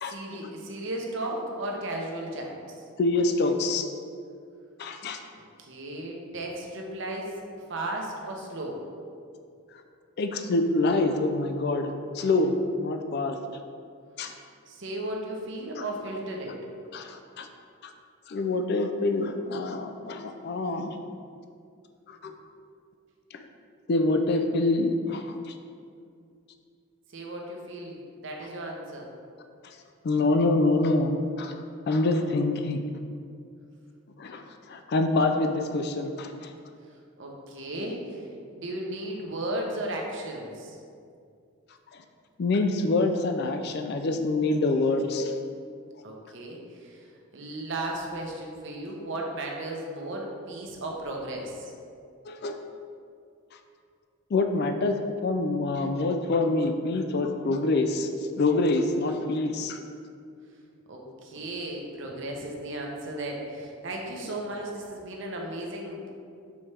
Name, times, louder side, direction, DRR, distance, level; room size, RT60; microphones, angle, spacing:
voice 1, 0.1-2.6 5.6-7.3 7.7-8.8 14.7-16.6 27.1-29.1 37.2-38.2 38.5-40.8 46.0-47.0 47.3-51.7 60.9-66.1, right 1 dB, 55° right, 0 dB, 0.8 m, -35 dB
voice 2, 3.0-3.8 4.8-5.2 10.2-13.4 14.2-14.3 15.8-15.9 16.9-17.5 18.3-21.0 22.1-22.3 23.3-23.4 23.9-25.3 30.0-31.6 31.9-32.8 34.2-36.5 41.9-42.0 42.4-45.3 52.3-52.6 54.3-55.0 55.2-58.1 58.4-59.8, left 2 dB, 50° left, 6 dB, 0.3 m, -26 dB
7.0 x 4.3 x 3.3 m, 2.4 s
head